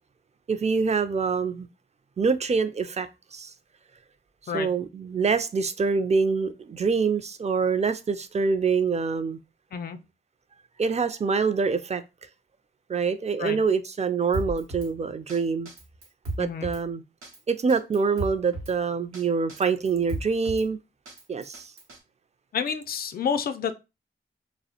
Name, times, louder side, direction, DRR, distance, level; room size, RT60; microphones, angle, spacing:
voice 1, 0.5-1.7 2.2-3.5 4.5-9.4 10.8-12.0 12.9-15.7 16.4-17.0 17.5-20.8 21.3-21.7, right 5 dB, 30° right, 0.4 m, -25 dB
Drum kit, 14.3-14.9 15.3-15.4 15.7-16.8 17.2-17.4 17.7-18.7 19.1-19.2 19.5-20.7 21.1-22.0, right 2 dB, 85° right, 0.7 m, -35 dB
voice 2, 16.4-16.7 22.5-23.7, left 7 dB, 45° left, 0.4 m, -29 dB
2.3 x 2.0 x 2.8 m
cardioid pair, 40°, 21 cm